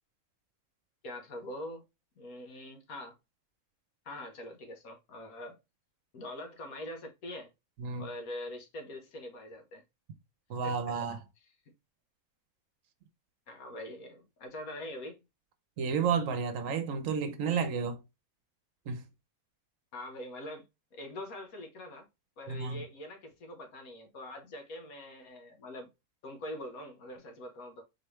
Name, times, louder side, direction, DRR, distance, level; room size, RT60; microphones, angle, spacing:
voice 1, 1.0-1.8 2.2-3.1 4.0-5.6 6.1-7.5 8.0-9.8 10.6-11.0 13.5-15.2 19.9-22.1 22.4-25.9 26.2-27.8, left 1 dB, 75° left, 1.6 m, -43 dB
voice 2, 10.5-11.2 15.8-18.0 18.9-19.0 22.5-22.8, right 6 dB, 65° right, 1.2 m, -31 dB
4.5 x 3.3 x 3.1 m
omnidirectional pair, 1.5 m